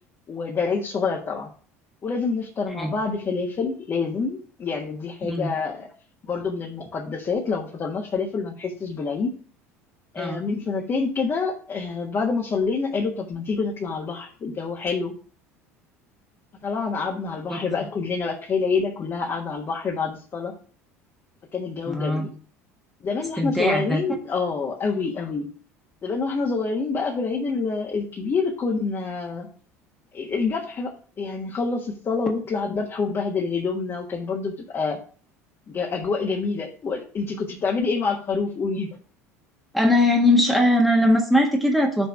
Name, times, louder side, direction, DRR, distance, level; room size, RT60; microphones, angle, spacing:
voice 1, 0.3-1.5 2.0-5.9 6.2-9.3 10.1-15.1 16.6-20.5 21.5-22.3 23.0-25.5 26.0-29.5 30.1-35.0 35.7-39.0, left 4 dB, 35° left, -1 dB, 1.4 m, -27 dB
voice 2, 21.9-22.3 23.4-24.2 39.7-42.1, left 1 dB, ahead, 1 dB, 1.4 m, -20 dB
6.4 x 4.1 x 5.9 m, 0.42 s
figure-of-eight pair, 70°, 8 cm